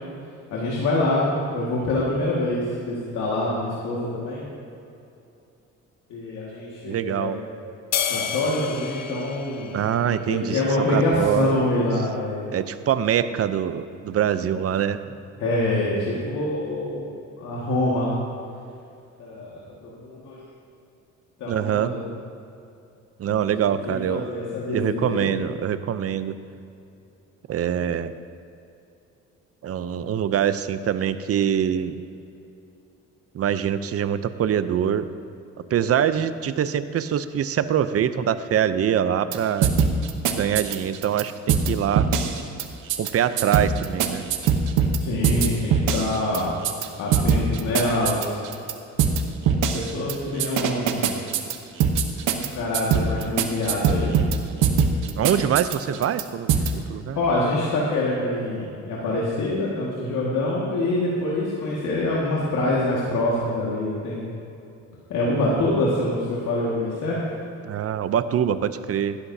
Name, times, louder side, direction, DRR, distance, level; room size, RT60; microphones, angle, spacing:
voice 1, 0.5-4.4 6.1-7.4 8.1-9.8 10.2-12.5 15.4-17.1 17.4-18.1 19.2-20.4 21.4-22.1 23.3-25.3 45.0-46.6 47.0-48.4 49.7-51.2 52.4-54.1 57.2-64.3 65.1-67.2, left 2 dB, 80° left, -5 dB, 1.9 m, -25 dB
voice 2, 6.9-7.4 9.7-10.6 10.9-11.6 12.5-15.0 21.5-22.0 23.2-24.3 24.6-26.3 27.5-28.1 29.6-31.9 33.3-35.1 35.7-39.7 40.3-42.1 43.0-44.2 55.2-56.5 56.9-57.2 67.6-69.2, right 9 dB, 50° right, 13 dB, 0.6 m, -24 dB
sound 1, 7.9-10.5, left 8 dB, 60° left, 0.8 m, -30 dB
sound 2, 39.3-39.4 39.6-41.2 41.5-41.7 42.0-42.6 42.9-43.1 43.4-45.0 45.2-46.9 47.1-48.7 49.0-49.2 49.5-50.1 50.4-52.5 52.7-54.4 54.6-56.2 56.5-56.7, right 8 dB, 90° right, 0.9 m, -21 dB
16.0 x 12.0 x 2.8 m, 2.7 s
cardioid pair, 90°, 30 cm